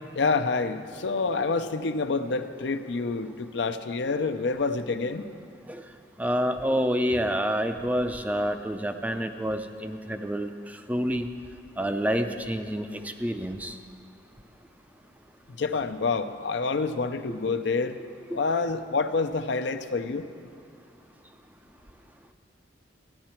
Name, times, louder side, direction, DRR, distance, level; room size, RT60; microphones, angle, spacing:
voice 1, 0.1-5.2 15.6-18.0 18.3-20.3, left 4 dB, 70° left, 9 dB, 0.5 m, -27 dB
voice 2, 6.2-10.5 10.9-11.3 11.8-12.9 13.2-13.7, equal, 10° right, 7 dB, 0.4 m, -27 dB
14.0 x 10.5 x 4.4 m, 2.4 s
head